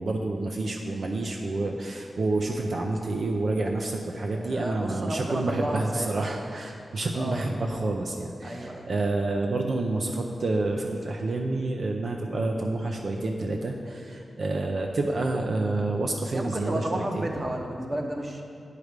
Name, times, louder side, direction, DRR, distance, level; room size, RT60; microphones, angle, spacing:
voice 1, 0.0-17.0, right 2 dB, 60° right, 1 dB, 0.5 m, -28 dB
voice 2, 4.4-6.3 7.1-7.4 8.4-8.9 16.3-18.4, right 1 dB, 35° right, 1 dB, 0.9 m, -32 dB
9.3 x 4.9 x 5.1 m, 2.4 s
wide cardioid pair, 95°, 0 cm